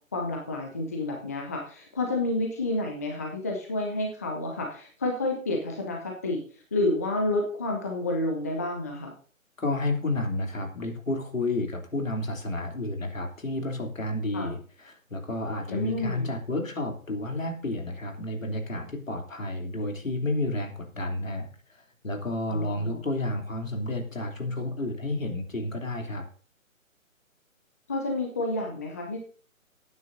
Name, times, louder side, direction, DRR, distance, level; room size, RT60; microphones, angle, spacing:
voice 1, 0.1-6.4 6.7-9.1 14.3-14.5 15.7-16.3 22.5-23.0 27.9-29.2, left 2 dB, 10° left, 1 dB, 0.6 m, -29 dB
voice 2, 9.6-26.2, left 2 dB, 70° left, 3 dB, 3.1 m, -31 dB
18.5 x 9.6 x 2.7 m, 0.43 s
figure-of-eight pair, 140°, 41 cm